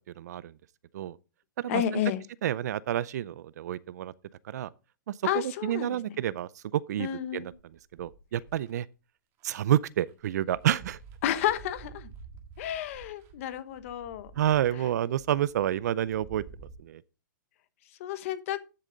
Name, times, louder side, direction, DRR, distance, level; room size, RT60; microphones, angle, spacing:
voice 1, 0.2-0.5 0.9-1.2 1.6-1.8 2.4-4.1 4.5-4.7 5.1-7.5 7.9-8.9 9.4-11.0 14.4-16.4 16.8-17.0, right 11 dB, 55° right, 0.5 m, -29 dB
voice 2, 1.7-2.2 5.2-6.1 7.0-7.5 11.2-12.1 12.6-14.3 18.0-18.6, left 11 dB, 40° left, 1.1 m, -31 dB
sound 1, 7.5-8.7 9.4-9.5 9.9-16.7, right 5 dB, 25° right, 1.7 m, -50 dB
10.5 x 6.9 x 3.9 m
hypercardioid pair, 160°, 11 cm